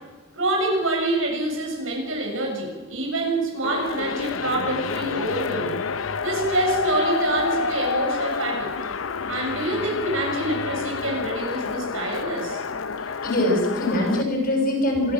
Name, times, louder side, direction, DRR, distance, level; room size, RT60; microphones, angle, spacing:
voice 1, 0.3-5.8 6.2-8.7 9.3-12.6, right 2 dB, 80° right, 1 dB, 7.3 m, -26 dB
sound 1, 3.6-14.2, left 5 dB, 75° left, 0.7 m, -29 dB
voice 2, 13.2-15.1, left 1 dB, 50° left, 0 dB, 6.4 m, -22 dB
26.5 x 14.0 x 7.6 m, 1.2 s
head